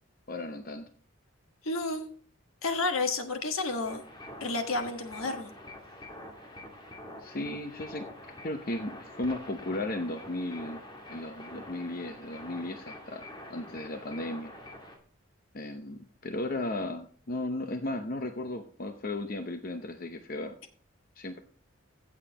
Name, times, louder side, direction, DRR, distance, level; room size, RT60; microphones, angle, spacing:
voice 1, 0.3-0.9 7.2-8.1 8.4-10.8 11.1-13.2 13.5-14.5 15.5-20.6 21.2-21.4, left 2 dB, 45° left, 7 dB, 0.7 m, -35 dB
voice 2, 1.6-2.1 2.6-4.0 4.4-5.5, left 3 dB, 80° left, 6 dB, 1.5 m, -31 dB
sound 1, 3.7-15.0, left 1 dB, 20° left, 1.8 m, -46 dB
15.5 x 7.3 x 2.9 m, 0.44 s
head